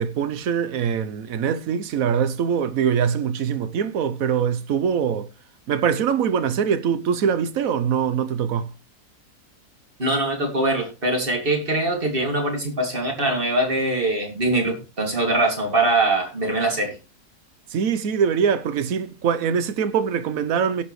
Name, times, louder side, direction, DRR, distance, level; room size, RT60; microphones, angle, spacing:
voice 1, 0.0-5.3 5.7-8.7 17.7-20.8, right 7 dB, 65° right, 1.2 m, -23 dB
voice 2, 10.0-16.9, right 2 dB, 35° right, 2.8 m, -22 dB
17.5 x 7.1 x 3.2 m
omnidirectional pair, 1.7 m